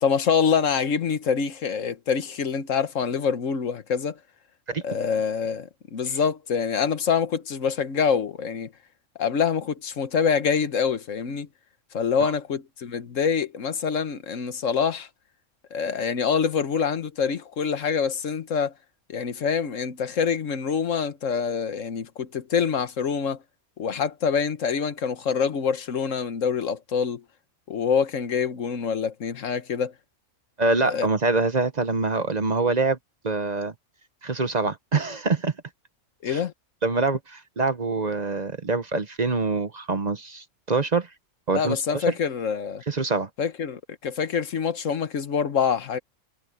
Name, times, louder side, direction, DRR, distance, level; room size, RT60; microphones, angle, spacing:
voice 1, 0.0-4.2 4.8-8.7 9.2-11.5 11.9-15.1 15.7-18.7 19.1-23.4 23.8-27.2 27.7-29.9 30.9-31.1 36.2-36.5 41.5-42.8 43.4-46.0, left 6 dB, 90° left, 1.6 m, -25 dB
voice 2, 30.6-33.0 33.2-33.7 34.2-35.5 36.3-36.4 36.8-41.1 41.5-42.1 42.9-43.3, right 3 dB, 35° right, 1.0 m, -25 dB
omnidirectional pair, 1.3 m